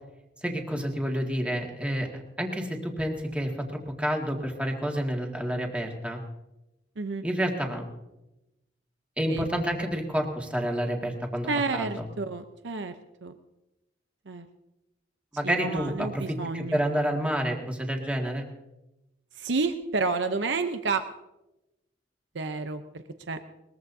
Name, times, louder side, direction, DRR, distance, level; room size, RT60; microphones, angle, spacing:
voice 1, 0.4-3.5 4.0-6.2 7.2-7.8 9.2-12.0 15.3-18.4, equal, 5° right, 0 dB, 1.9 m, -29 dB
voice 2, 11.5-12.9 13.2-13.4 14.3-14.5 15.4-16.8 19.4-21.0 22.3-22.8 23.3-23.4, right 4 dB, 80° right, 8 dB, 0.8 m, -30 dB
21.5 x 21.0 x 2.7 m, 0.97 s
head